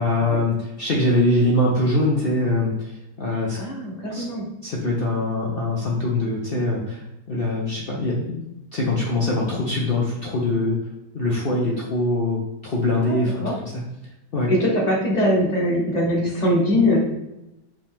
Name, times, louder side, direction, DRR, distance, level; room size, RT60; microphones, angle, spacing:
voice 1, 0.0-3.6 4.1-4.2 4.6-8.4 8.7-10.8 11.1-13.7 14.3-14.5, left 2 dB, 65° left, -3 dB, 0.5 m, -23 dB
voice 2, 3.6-4.5 13.0-13.5 14.5-17.0, left 1 dB, 30° left, -3 dB, 1.0 m, -22 dB
5.0 x 2.8 x 3.5 m, 0.90 s
omnidirectional pair, 1.9 m